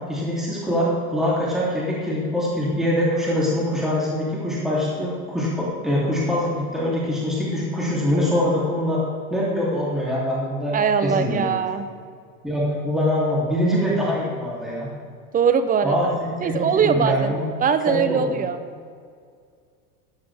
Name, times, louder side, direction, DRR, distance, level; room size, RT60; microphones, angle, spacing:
voice 1, 0.1-9.0 9.3-11.5 12.4-14.9 15.8-17.5 17.9-18.2, equal, ahead, -7 dB, 3.0 m, -23 dB
voice 2, 10.7-11.9 15.3-16.0 16.4-17.3 17.6-18.6, right 7 dB, 20° right, 10 dB, 0.6 m, -21 dB
13.5 x 9.8 x 3.5 m, 2.1 s
hypercardioid pair, 115°, 47 cm